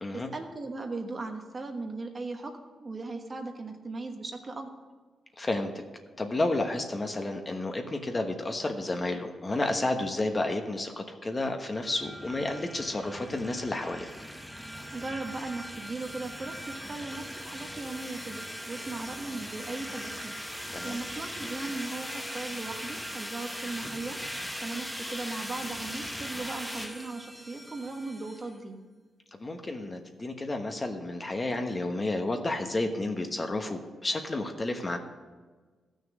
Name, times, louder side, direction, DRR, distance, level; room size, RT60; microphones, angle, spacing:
voice 1, 0.1-4.7 14.9-24.2 24.6-28.8, right 3 dB, 35° right, 4 dB, 1.3 m, -38 dB
voice 2, 5.4-5.7 6.2-14.1 20.7-21.0 29.4-35.0, left 2 dB, 30° left, 5 dB, 1.1 m, -31 dB
sound 1, 11.7-28.5, equal, 5° left, 1.0 m, -40 dB
13.0 x 6.5 x 6.3 m, 1.4 s
cardioid pair, 85°, 0 cm